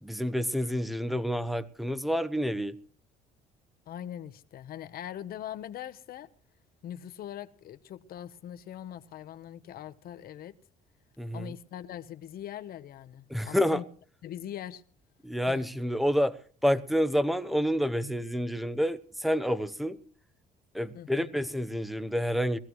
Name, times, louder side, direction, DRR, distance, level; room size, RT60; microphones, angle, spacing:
voice 1, 0.0-2.8 11.2-11.5 13.3-13.8 15.2-20.0 20.7-22.6, equal, ahead, 0.9 m, -28 dB
voice 2, 3.9-6.3 6.8-10.5 11.3-13.8 14.2-14.8 15.5-15.6 20.9-21.3, left 11 dB, 60° left, 1.1 m, -41 dB
22.0 x 15.5 x 3.2 m
cardioid pair, 110°, 17 cm